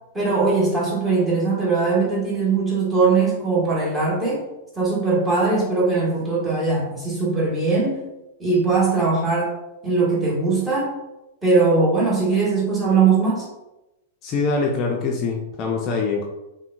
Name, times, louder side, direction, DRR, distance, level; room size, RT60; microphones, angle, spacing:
voice 1, 0.1-4.5 4.8-8.0 8.4-9.5 9.8-10.9 11.4-13.4, right 4 dB, 15° right, -5 dB, 1.4 m, -20 dB
voice 2, 14.2-16.2, left 4 dB, 35° left, 0 dB, 0.5 m, -24 dB
5.5 x 2.2 x 2.4 m, 0.95 s
figure-of-eight pair, 100°, 0 cm